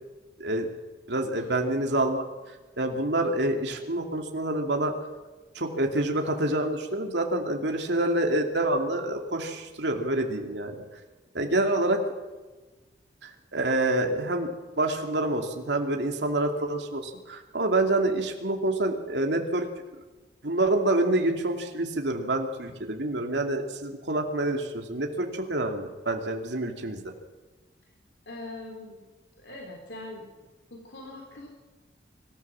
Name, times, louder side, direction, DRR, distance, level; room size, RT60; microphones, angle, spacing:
voice 1, 1.1-2.2 2.8-4.9 5.5-10.8 11.3-12.0 13.2-19.7 20.4-27.0, right 2 dB, 75° right, 3 dB, 2.6 m, -27 dB
voice 2, 28.3-29.0 29.4-30.3 30.7-31.5, left 2 dB, 70° left, 1 dB, 3.4 m, -41 dB
24.5 x 14.0 x 7.5 m, 1.2 s
head